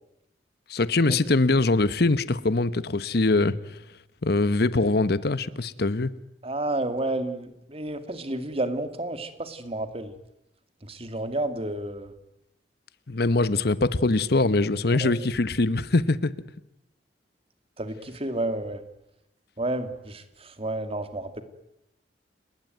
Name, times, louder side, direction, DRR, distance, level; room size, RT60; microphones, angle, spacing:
voice 1, 0.7-3.8 4.2-6.1 13.1-16.3, left 2 dB, 60° left, 16 dB, 1.0 m, -23 dB
voice 2, 6.4-10.1 10.8-12.1 15.0-15.1 17.8-18.8 19.6-21.4, right 2 dB, 35° right, 9 dB, 2.3 m, -31 dB
30.0 x 20.0 x 9.3 m, 0.86 s
head